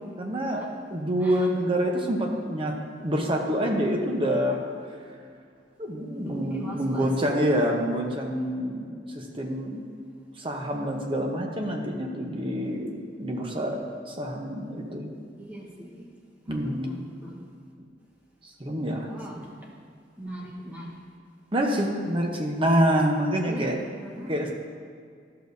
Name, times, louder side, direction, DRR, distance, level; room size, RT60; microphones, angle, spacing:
voice 1, 0.2-4.6 5.8-9.8 10.4-13.8 14.1-15.1 16.5-17.0 18.4-19.1 19.4-19.5 21.5-23.8 24.3-24.5, equal, 30° right, 1 dB, 0.8 m, -27 dB
voice 2, 6.1-7.1 15.4-16.0 16.5-17.4 19.1-19.5 20.2-21.0 23.5-23.7 24.0-24.3, equal, 10° right, -4 dB, 1.2 m, -40 dB
12.0 x 6.6 x 2.7 m, 2.2 s
head